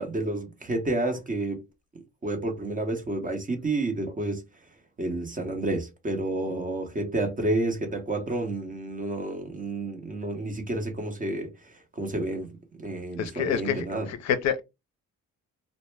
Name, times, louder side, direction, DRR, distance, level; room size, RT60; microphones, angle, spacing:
voice 1, 0.0-1.6 2.2-4.4 5.0-12.5 12.8-14.1, right 2 dB, 25° right, 0.8 m, -30 dB
voice 2, 13.2-14.6, left 8 dB, 65° left, 0.5 m, -28 dB
2.1 x 2.0 x 3.2 m
cardioid pair, 90°, 30 cm